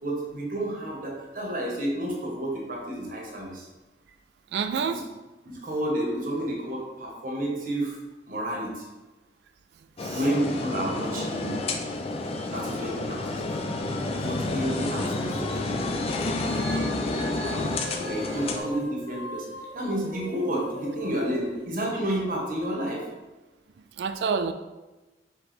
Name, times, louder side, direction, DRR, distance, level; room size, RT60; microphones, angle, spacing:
voice 1, 0.0-3.7 4.9-5.0 5.4-8.0 8.3-8.8 10.1-11.5 12.5-13.5 14.2-16.0 16.4-17.6 18.0-19.5 19.7-23.0, right 1 dB, 50° right, -1 dB, 0.9 m, -30 dB
voice 2, 4.5-5.0 10.0-10.2 16.5-16.9 17.4-18.2 24.0-24.5, right 6 dB, 70° right, 9 dB, 0.3 m, -30 dB
sound 1, 10.0-18.6, left 2 dB, 35° left, 0.4 m, -30 dB
sound 2, 17.6-22.3, left 1 dB, 85° left, 0.8 m, -41 dB
4.9 x 3.1 x 3.1 m, 1.1 s
head